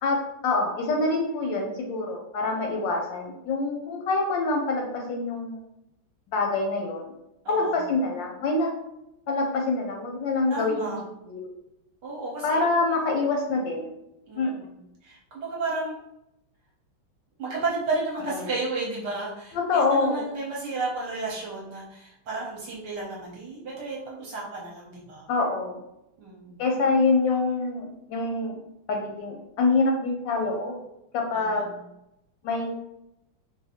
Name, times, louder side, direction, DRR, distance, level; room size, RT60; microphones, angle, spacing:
voice 1, 0.0-5.6 6.3-7.1 7.5-8.7 9.3-11.5 12.4-13.9 14.3-14.5 18.3-18.4 19.5-20.3 25.3-25.8 26.6-28.6 28.9-30.8 31.1-31.7 32.4-32.8, left 3 dB, 75° left, 1 dB, 1.2 m, -26 dB
voice 2, 10.5-11.0 12.0-12.6 14.3-14.7 15.0-16.0 17.4-25.3 26.2-26.6 31.3-31.7, right 3 dB, 65° right, -3 dB, 1.2 m, -32 dB
3.9 x 2.5 x 2.8 m, 0.85 s
omnidirectional pair, 2.3 m